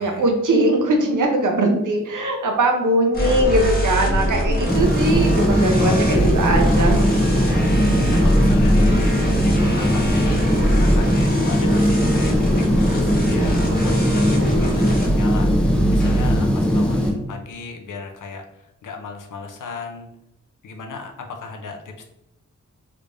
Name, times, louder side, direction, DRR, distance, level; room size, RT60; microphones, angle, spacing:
voice 1, 0.0-7.5, right 1 dB, 80° right, 3 dB, 0.8 m, -20 dB
sound 1, 3.1-16.4, right 1 dB, 30° left, 1.0 m, -22 dB
sound 2, 4.7-17.1, equal, 5° left, 0.6 m, -20 dB
voice 2, 5.8-6.3 7.4-18.4 18.8-20.1 20.6-22.1, left 4 dB, 85° left, 4 dB, 0.6 m, -36 dB
3.3 x 3.3 x 2.5 m, 0.89 s
wide cardioid pair, 110°, 30 cm